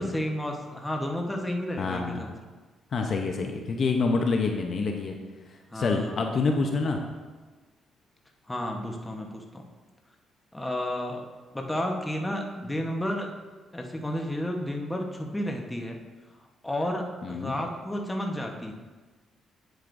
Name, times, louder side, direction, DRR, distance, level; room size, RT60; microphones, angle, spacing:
voice 1, 0.0-2.3 4.3-4.4 5.7-6.2 8.5-9.6 10.5-11.3 11.5-13.3 13.7-16.0 16.6-18.7, left 1 dB, 10° left, 1 dB, 1.1 m, -32 dB
voice 2, 1.8-2.3 2.9-5.1 5.5-7.0 17.2-17.6, left 4 dB, 50° left, 3 dB, 0.8 m, -27 dB
8.7 x 8.0 x 2.6 m, 1.3 s
cardioid pair, 90°, 0 cm